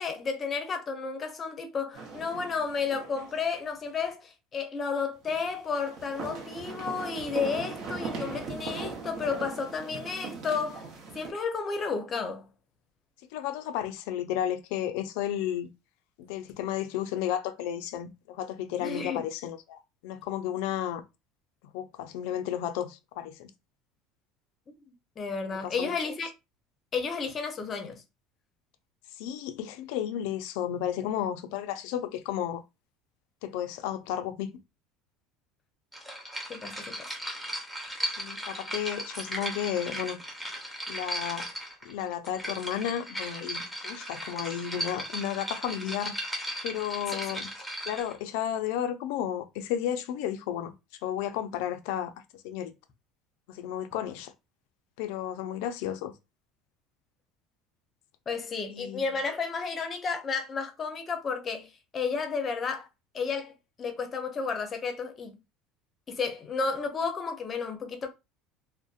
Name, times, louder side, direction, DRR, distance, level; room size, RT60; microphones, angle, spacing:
voice 1, 0.0-10.9 11.1-12.5 18.8-19.2 24.9-26.3 26.9-28.0 36.5-37.0 47.1-47.4 58.3-62.9 63.1-63.5 63.8-65.4 66.1-68.1, left 5 dB, 30° left, 0.6 m, -32 dB
sound 1, 1.9-3.5 3.8-3.9 5.2-11.3, right 4 dB, 60° right, 0.8 m, -39 dB
voice 2, 13.3-15.7 16.2-21.0 21.7-23.5 25.5-26.1 29.2-32.6 33.4-34.5 38.2-40.2 40.9-41.5 41.8-46.1 46.6-47.5 47.9-50.7 51.0-52.1 52.4-52.7 53.5-54.3 55.0-56.1 58.7-59.0, left 10 dB, 80° left, 0.4 m, -33 dB
sound 2, 35.9-48.2, equal, ahead, 0.7 m, -37 dB
2.6 x 2.1 x 2.3 m
cardioid pair, 130°, 0 cm